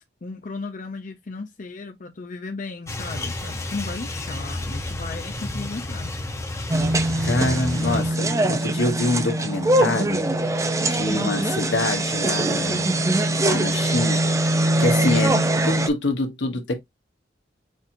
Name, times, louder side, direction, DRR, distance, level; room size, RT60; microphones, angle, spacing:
voice 1, 0.2-6.2 7.6-8.0 11.1-11.5 15.3-15.5, left 3 dB, 45° left, 0.6 m, -35 dB
sound 1, 2.9-8.1, left 2 dB, 15° left, 0.9 m, -31 dB
sound 2, 6.7-15.9, right 1 dB, 15° right, 0.5 m, -22 dB
voice 2, 7.2-10.2 10.8-12.9 13.5-14.2 14.8-15.3 15.6-16.7, left 2 dB, 80° left, 1.3 m, -25 dB
6.4 x 2.9 x 2.6 m
head